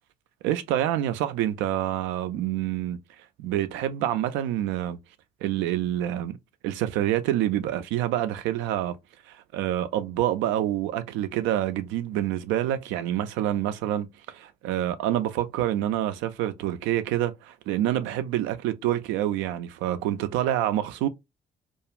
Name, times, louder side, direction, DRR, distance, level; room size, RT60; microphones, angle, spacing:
voice 1, 0.4-3.0 3.4-5.0 5.4-6.4 6.6-9.0 9.3-14.1 14.3-21.1, right 12 dB, 70° right, 0.4 m, -27 dB
2.4 x 2.3 x 2.9 m
hypercardioid pair, 40°, 20 cm